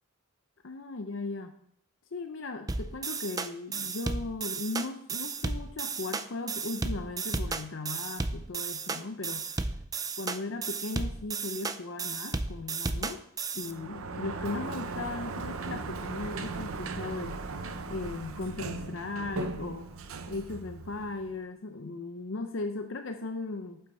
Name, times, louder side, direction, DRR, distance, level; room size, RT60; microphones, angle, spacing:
voice 1, 0.6-1.5 2.1-9.6 10.2-13.2 13.5-17.4 17.9-19.9 20.3-23.8, left 3 dB, 60° left, 7 dB, 0.6 m, -37 dB
sound 1, 2.7-13.7, right 4 dB, 15° right, 0.4 m, -34 dB
Sliding door, 13.6-21.4, right 3 dB, 80° right, 0.7 m, -38 dB
8.9 x 8.1 x 4.3 m, 0.68 s
head